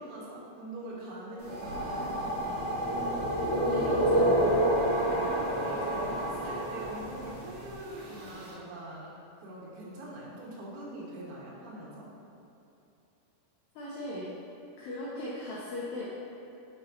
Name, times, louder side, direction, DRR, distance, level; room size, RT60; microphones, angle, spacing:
voice 1, 0.0-2.3 3.3-4.0 5.0-9.1 9.4-12.1, right 1 dB, 85° right, -6 dB, 4.0 m, -43 dB
sound 1, 1.4-8.5, right 1 dB, 70° right, 2.2 m, -36 dB
sound 2, 2.6-7.5, equal, 65° left, 2.7 m, -28 dB
voice 2, 3.6-4.5 13.8-14.3 14.8-16.0, left 1 dB, 90° left, -8 dB, 2.4 m, -38 dB
9.7 x 4.7 x 2.8 m, 2.9 s
omnidirectional pair, 6.0 m